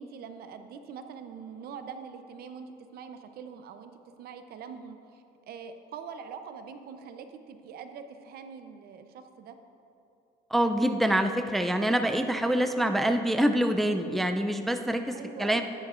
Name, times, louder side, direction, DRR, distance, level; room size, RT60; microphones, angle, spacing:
voice 1, 0.0-9.6 15.1-15.6, right 6 dB, 65° right, 8 dB, 0.7 m, -43 dB
voice 2, 10.5-15.6, right 1 dB, ahead, 7 dB, 0.4 m, -26 dB
13.5 x 9.8 x 2.5 m, 2.8 s
cardioid pair, 110°, 17 cm